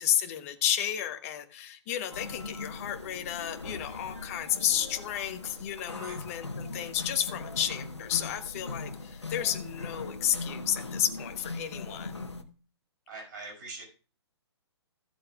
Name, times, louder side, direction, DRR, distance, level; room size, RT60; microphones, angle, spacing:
voice 1, 0.0-12.2, left 10 dB, 30° left, 8 dB, 1.0 m, -32 dB
sound 1, 2.1-12.4, left 3 dB, 75° left, 1.1 m, -40 dB
voice 2, 13.1-13.8, right 3 dB, 45° right, 1 dB, 5.2 m, -43 dB
15.5 x 7.7 x 2.4 m, 0.36 s
figure-of-eight pair, 125°, 15 cm